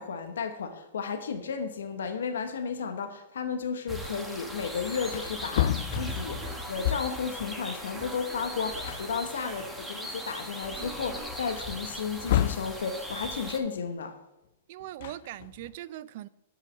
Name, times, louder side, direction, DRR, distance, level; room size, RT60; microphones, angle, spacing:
voice 1, 0.0-14.2, left 6 dB, 80° left, 1.0 m, -33 dB
sound 1, 3.9-13.6, left 1 dB, ahead, 1.5 m, -39 dB
sound 2, 5.0-11.6, right 3 dB, 25° right, 1.8 m, -47 dB
Wood, 5.1-7.3 8.4-8.5 8.8-10.0 10.5-10.6 11.9-12.8 14.8-15.7, left 11 dB, 60° left, 0.5 m, -31 dB
voice 2, 14.7-16.3, right 14 dB, 55° right, 0.4 m, -41 dB
8.1 x 5.6 x 7.3 m
hypercardioid pair, 115°, 0 cm